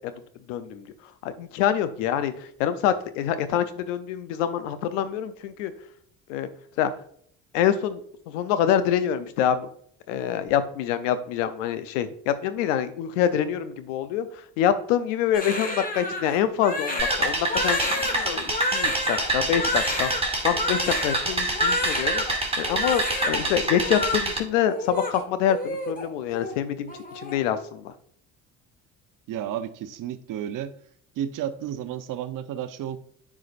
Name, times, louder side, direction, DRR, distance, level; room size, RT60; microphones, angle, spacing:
voice 1, 0.5-0.9 1.2-5.7 6.3-6.5 6.8-6.9 7.5-8.0 8.3-9.7 10.1-14.3 14.6-27.9, left 9 dB, 85° left, 12 dB, 0.7 m, -26 dB
Crying sobbing, 15.3-22.3 22.6-23.4 23.7-24.2 24.7-26.0 26.3-26.6 26.9-27.4, left 2 dB, 25° left, 1.5 m, -29 dB
sound 1, 17.0-24.4, right 2 dB, 15° right, 2.4 m, -27 dB
voice 2, 29.3-30.7 31.2-33.0, right 10 dB, 60° right, 11 dB, 0.8 m, -32 dB
9.4 x 4.9 x 2.5 m, 0.62 s
hypercardioid pair, 65°, 36 cm